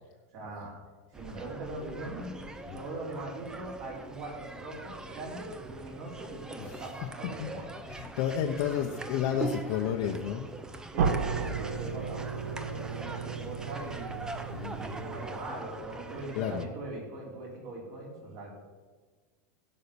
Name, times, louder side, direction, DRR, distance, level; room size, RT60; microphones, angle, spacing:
voice 1, 0.3-0.7 1.1-2.4 2.7-7.7 10.9-14.2 14.7-18.5, right 2 dB, 45° right, -2 dB, 4.3 m, -41 dB
sound 1, 1.1-16.7, right 2 dB, 10° right, 0.6 m, -42 dB
voice 2, 7.9-10.5 14.5-14.8 16.3-16.7, left 9 dB, 55° left, 1 dB, 0.9 m, -31 dB
sound 2, 11.0-15.8, right 5 dB, 80° right, 1.1 m, -34 dB
16.0 x 5.6 x 7.0 m, 1.4 s
supercardioid pair, 160°, 8 cm